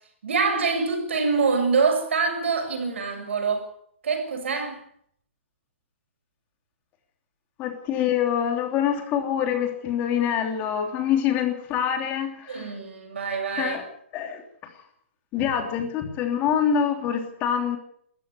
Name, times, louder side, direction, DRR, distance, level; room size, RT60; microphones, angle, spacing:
voice 1, 0.2-3.6 4.0-4.8 12.5-13.8, right 4 dB, 75° right, 6.8 m, -25 dB
voice 2, 7.6-12.7 13.6-13.8 14.1-14.7 15.3-17.8, left 8 dB, 25° left, 3.1 m, -25 dB
19.0 x 14.0 x 9.7 m
hypercardioid pair, 155°, 7 cm